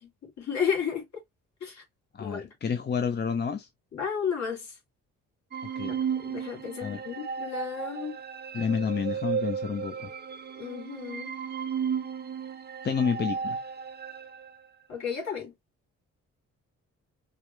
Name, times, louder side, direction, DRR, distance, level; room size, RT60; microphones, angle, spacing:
voice 1, 0.0-1.0 1.6-1.8 2.2-2.5 3.9-4.7 5.9-8.2 10.6-11.3 14.9-15.5, left 7 dB, 65° left, 3.0 m, -33 dB
voice 2, 2.1-3.7 5.8-6.0 6.8-7.0 8.5-10.1 12.8-13.6, left 6 dB, 35° left, 0.7 m, -29 dB
sound 1, 5.5-14.5, right 7 dB, 35° right, 0.7 m, -34 dB
4.8 x 2.3 x 3.2 m
cardioid pair, 90°, 30 cm